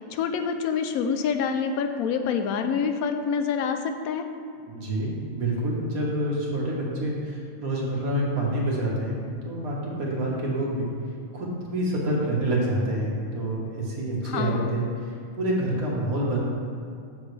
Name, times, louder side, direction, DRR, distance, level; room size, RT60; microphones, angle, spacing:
voice 1, 0.1-4.2 14.2-14.8, left 6 dB, 90° left, 7 dB, 1.1 m, -27 dB
voice 2, 4.7-10.9 11.3-16.4, right 1 dB, 80° right, -3 dB, 1.8 m, -27 dB
7.3 x 7.0 x 3.3 m, 2.5 s
omnidirectional pair, 1.5 m